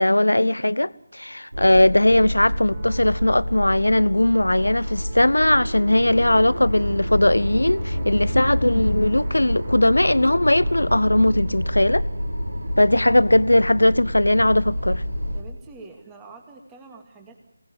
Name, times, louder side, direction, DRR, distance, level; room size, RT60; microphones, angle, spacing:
voice 1, 0.0-12.0 12.8-15.0, left 1 dB, 80° left, 0.9 m, -19 dB
sound 1, 1.5-15.4, equal, 70° right, 6.3 m, -28 dB
sound 2, 2.7-11.3, right 2 dB, 35° right, 5.6 m, -44 dB
voice 2, 15.3-17.4, right 3 dB, 10° right, 2.5 m, -45 dB
27.0 x 19.0 x 9.9 m
figure-of-eight pair, 160°, 0 cm